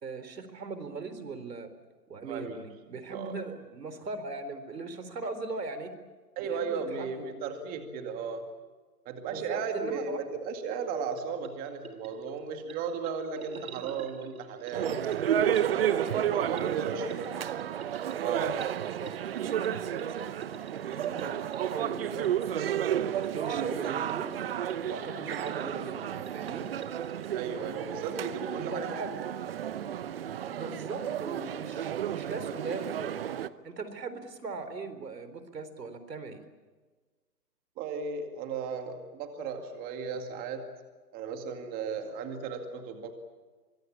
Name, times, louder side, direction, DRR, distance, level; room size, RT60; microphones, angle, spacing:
voice 1, 0.0-1.7 2.1-5.9 6.4-7.3 9.3-10.2 13.6-13.7 15.8-16.2 16.5-17.4 18.9-20.3 20.9-24.4 24.9-26.7 28.5-29.2 30.5-33.2 33.6-36.4, right 4 dB, 80° right, 11 dB, 4.0 m, -39 dB
voice 2, 2.3-2.6 3.1-3.4 6.4-8.5 9.1-14.9 15.7-17.3 18.2-18.6 27.3-28.9 37.8-40.7 41.1-43.1, right 5 dB, 20° right, 6 dB, 2.2 m, -35 dB
sound 1, 11.0-27.3, right 8 dB, 55° right, 3.0 m, -49 dB
sound 2, 14.7-33.5, right 10 dB, 35° right, 0.8 m, -32 dB
24.5 x 22.0 x 8.7 m, 1.4 s
hypercardioid pair, 155°, 48 cm